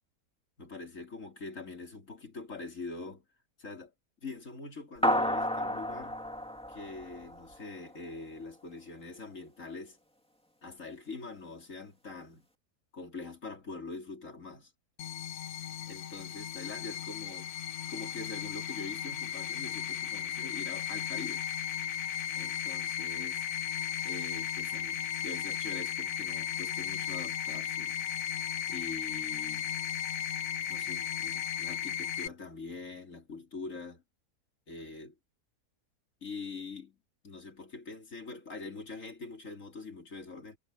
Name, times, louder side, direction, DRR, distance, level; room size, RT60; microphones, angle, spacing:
voice 1, 0.6-3.3 3.6-3.9 4.2-6.2 6.7-10.0 10.6-12.5 12.9-14.7 15.9-17.5 17.9-21.4 22.4-23.5 24.0-28.0 28.7-29.7 30.7-34.0 34.7-35.2 36.2-37.0 37.2-40.6, left 3 dB, 55° left, 3.5 m, -44 dB
sound 1, 5.0-7.7, equal, 5° left, 2.3 m, -31 dB
sound 2, 15.0-32.3, left 9 dB, 75° left, 1.3 m, -35 dB
omnidirectional pair, 1.6 m